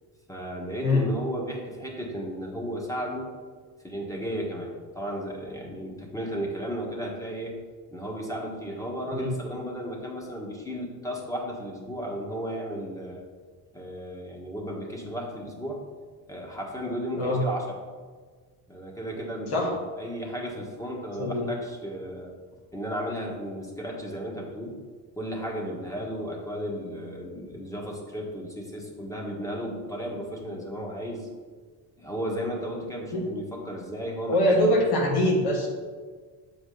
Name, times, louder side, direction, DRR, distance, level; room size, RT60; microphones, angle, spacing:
voice 1, 0.3-3.4 3.8-7.6 7.9-13.2 13.7-15.8 16.3-17.8 18.7-22.3 22.7-24.8 25.1-31.3 32.0-34.8, equal, 10° left, -2 dB, 1.6 m, -34 dB
voice 2, 34.3-35.7, left 1 dB, 65° left, -1 dB, 1.9 m, -23 dB
7.4 x 5.1 x 3.9 m, 1.5 s
cardioid pair, 90°, 42 cm